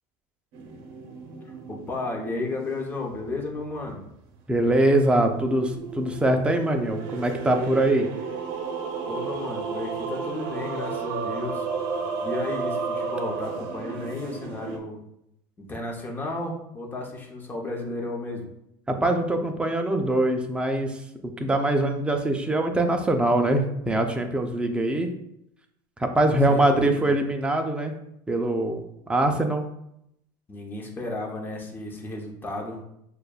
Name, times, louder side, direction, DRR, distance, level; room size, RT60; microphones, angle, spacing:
sound 1, 0.5-3.9 5.0-14.8, right 5 dB, 60° right, 0.7 m, -33 dB
voice 1, 1.4-4.0 9.1-11.7 12.2-15.0 15.6-18.5 26.3-27.1 30.5-32.8, left 2 dB, 20° left, 0 dB, 0.8 m, -33 dB
voice 2, 4.5-8.1 18.9-21.0 21.4-25.1 26.0-27.9 28.3-29.7, right 1 dB, 10° right, 5 dB, 0.4 m, -23 dB
6.5 x 2.3 x 2.3 m, 0.78 s
supercardioid pair, 130°, 11 cm